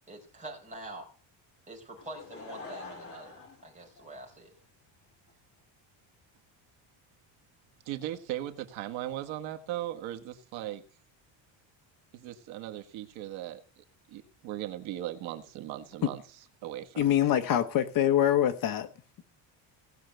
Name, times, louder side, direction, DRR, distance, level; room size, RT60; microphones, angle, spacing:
voice 1, 0.1-1.1 1.7-4.5, right 1 dB, 15° right, 4.9 m, -45 dB
Laughter / Crowd, 2.0-4.6 5.3-5.4, left 3 dB, 30° left, 4.9 m, -46 dB
voice 2, 7.9-10.8 12.1-16.2 16.6-17.0, right 13 dB, 80° right, 1.7 m, -38 dB
voice 3, 17.0-18.9, left 11 dB, 45° left, 1.1 m, -24 dB
18.0 x 6.5 x 8.0 m
cardioid pair, 175°, 46 cm